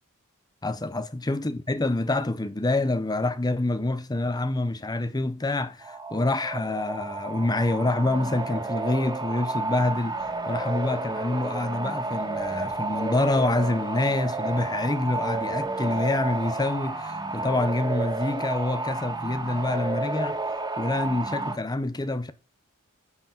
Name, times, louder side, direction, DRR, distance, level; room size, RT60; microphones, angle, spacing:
voice 1, 0.6-20.4 20.8-22.3, left 2 dB, 20° left, 0.7 m, -27 dB
sound 1, 5.8-21.6, right 3 dB, 20° right, 2.2 m, -31 dB
9.7 x 7.0 x 7.8 m
head